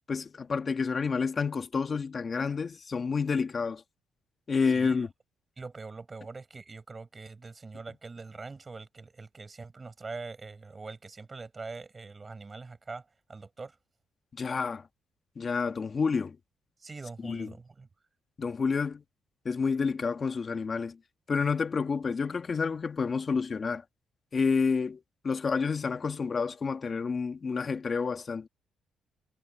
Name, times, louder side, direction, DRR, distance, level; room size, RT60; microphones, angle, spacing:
voice 1, 0.1-3.8 4.5-5.1 14.3-14.9 15.4-16.4 17.2-17.5 18.4-19.0 19.5-21.0 21.3-23.8 24.3-28.5, left 5 dB, 40° left, 1.9 m, -29 dB
voice 2, 4.7-5.1 5.6-13.8 16.8-17.9, right 4 dB, 30° right, 6.1 m, -43 dB
cardioid pair, 75°, 0 cm